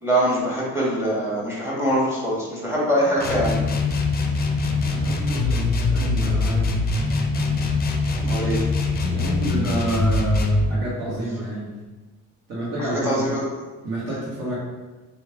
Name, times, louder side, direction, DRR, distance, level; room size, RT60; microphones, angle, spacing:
voice 1, 0.0-3.6 8.1-8.6 12.8-13.4, equal, 10° right, -5 dB, 1.3 m, -23 dB
sound 1, 3.2-10.7, left 3 dB, 30° left, 0.5 m, -22 dB
voice 2, 4.9-6.7 9.0-11.7 12.5-13.4 13.8-14.6, right 1 dB, 70° right, -7 dB, 1.4 m, -29 dB
3.2 x 2.7 x 3.3 m, 1.2 s
cardioid pair, 85°, 34 cm